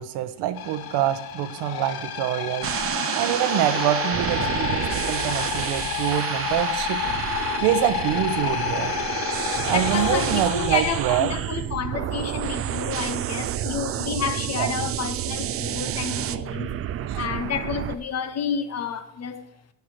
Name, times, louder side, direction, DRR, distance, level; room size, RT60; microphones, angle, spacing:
voice 1, 0.0-2.7 3.1-7.0 7.6-9.0 9.6-11.3 14.6-14.7 17.1-17.2, right 12 dB, 65° right, 1.0 m, -25 dB
sound 1, 0.6-11.4, left 10 dB, 55° left, 1.3 m, -30 dB
sound 2, 2.6-17.9, right 11 dB, 35° right, 0.4 m, -29 dB
voice 2, 9.4-16.7 17.1-19.4, left 7 dB, 35° left, 0.9 m, -30 dB
12.0 x 4.7 x 7.7 m
cardioid pair, 130°, 44 cm